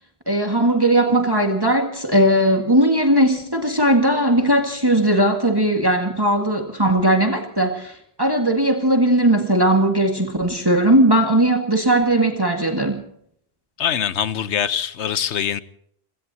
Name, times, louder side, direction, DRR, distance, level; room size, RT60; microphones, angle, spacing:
voice 1, 0.3-13.0, right 1 dB, 20° right, 1.9 m, -18 dB
voice 2, 13.8-15.6, left 8 dB, 80° left, 1.2 m, -23 dB
29.0 x 17.0 x 2.9 m
omnidirectional pair, 1.1 m